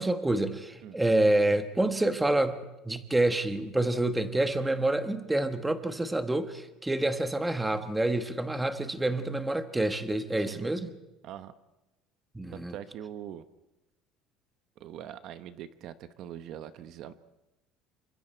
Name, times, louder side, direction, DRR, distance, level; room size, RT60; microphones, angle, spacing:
voice 1, 0.0-2.6 2.8-10.9 12.3-12.7, right 1 dB, 5° right, 9 dB, 1.3 m, -27 dB
voice 2, 12.5-13.4 14.8-17.1, right 10 dB, 55° right, 11 dB, 1.0 m, -42 dB
28.0 x 25.0 x 4.6 m, 0.99 s
cardioid pair, 145°, 0 cm